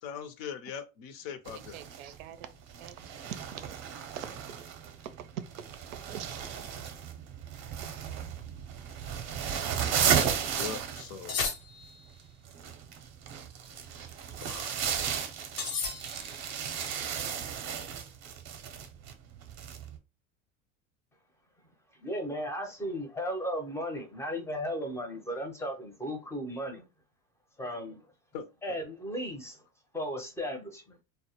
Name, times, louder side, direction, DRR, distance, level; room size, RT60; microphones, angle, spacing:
voice 1, 0.0-1.8 10.6-11.4 14.4-14.8 28.3-28.5, left 8 dB, 55° left, 0.5 m, -40 dB
sound 1, 1.5-20.0, right 8 dB, 40° right, 0.6 m, -34 dB
voice 2, 1.7-2.5 2.8-3.0 3.2-3.4 4.2-4.7 5.2-5.4 6.1-6.7, right 10 dB, 90° right, 0.5 m, -42 dB
sound 2, 11.3-12.2 15.6-16.5, left 5 dB, 75° left, 0.9 m, -34 dB
voice 3, 22.0-26.8 27.6-28.0 28.6-29.6 29.9-31.0, equal, 5° left, 0.5 m, -35 dB
2.1 x 2.1 x 2.8 m
supercardioid pair, 110°, 40 cm